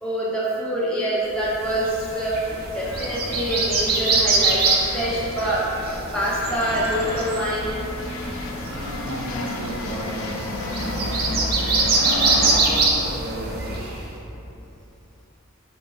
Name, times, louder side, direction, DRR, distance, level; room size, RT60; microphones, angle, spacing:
voice 1, 0.0-4.6 4.9-5.6 6.1-7.7, right 1 dB, 5° left, -7 dB, 0.6 m, -25 dB
sound 1, 1.6-14.0, right 3 dB, 45° right, 0.4 m, -24 dB
sound 2, 2.5-12.6, left 2 dB, 65° left, 0.3 m, -33 dB
voice 2, 8.6-11.5 12.0-14.1, equal, 90° right, -2 dB, 0.6 m, -34 dB
3.7 x 2.4 x 3.9 m, 2.9 s
head